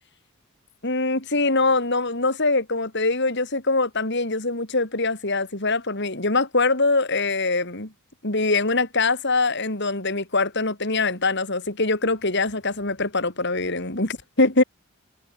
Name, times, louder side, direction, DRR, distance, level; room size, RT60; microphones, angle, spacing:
voice 1, 0.8-7.9 8.2-14.6, left 3 dB, 55° left, 4.3 m, -23 dB
head